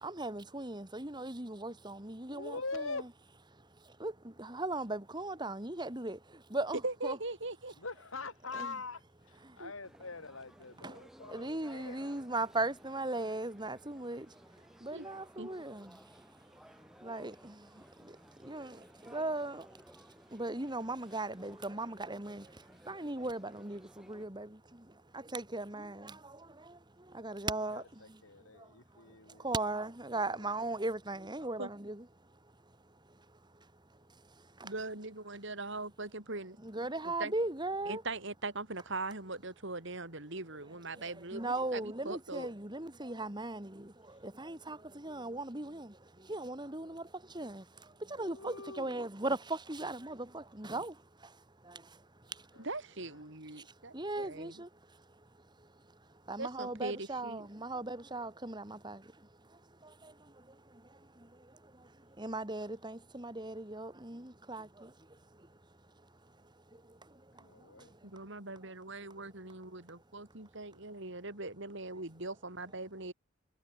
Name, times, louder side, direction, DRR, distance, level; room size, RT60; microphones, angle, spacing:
voice 1, 0.0-2.6 3.8-7.2 9.5-9.6 10.8-11.0 11.3-16.2 16.6-28.2 28.5-32.0 33.1-33.2 34.4-34.7 36.6-38.0 40.9-51.4 51.6-52.6 53.6-54.7 55.6-55.7 56.3-65.6 66.7-68.1, right 2 dB, 20° right, 2.7 m, -39 dB
voice 2, 2.3-3.1 7.8-12.2 27.7-29.7 30.1-30.5 44.1-44.3 48.2-49.0 52.5-52.7 53.0-53.2 67.3-68.0, left 3 dB, 70° left, 3.9 m, -44 dB
voice 3, 6.8-7.7 9.6-9.7 14.9-15.1 15.4-15.5 31.6-31.7 34.6-37.3 37.9-42.5 52.6-54.6 56.4-57.5 68.0-73.1, right 2 dB, 60° right, 3.9 m, -41 dB
sound 1, 9.8-24.3, equal, ahead, 5.0 m, -58 dB
head